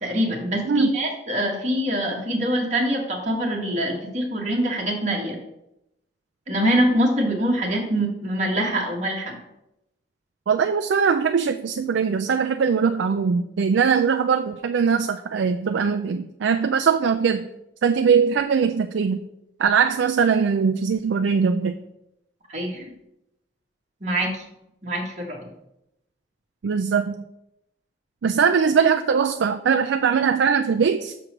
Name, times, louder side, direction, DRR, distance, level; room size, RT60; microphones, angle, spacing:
voice 1, 0.0-5.4 6.5-9.4 22.5-22.9 24.0-24.4 24.8-25.5, right 1 dB, 40° right, -2 dB, 1.8 m, -24 dB
voice 2, 10.5-17.5 17.8-19.2 19.6-21.7 26.6-27.2 28.2-31.1, right 6 dB, 85° right, 6 dB, 0.4 m, -21 dB
6.2 x 4.5 x 6.4 m, 0.85 s
head